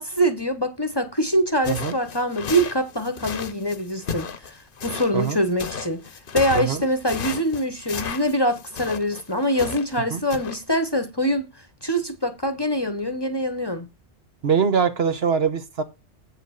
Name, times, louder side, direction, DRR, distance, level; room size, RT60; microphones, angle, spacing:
voice 1, 0.0-4.5 4.8-6.0 6.3-11.5 11.8-13.9, equal, 25° left, 0.9 m, -24 dB
sound 1, 1.6-10.0 10.3-10.6, left 6 dB, 55° left, 1.0 m, -34 dB
voice 2, 14.4-15.8, right 6 dB, 60° right, 1.3 m, -22 dB
8.5 x 4.8 x 6.4 m
omnidirectional pair, 1.2 m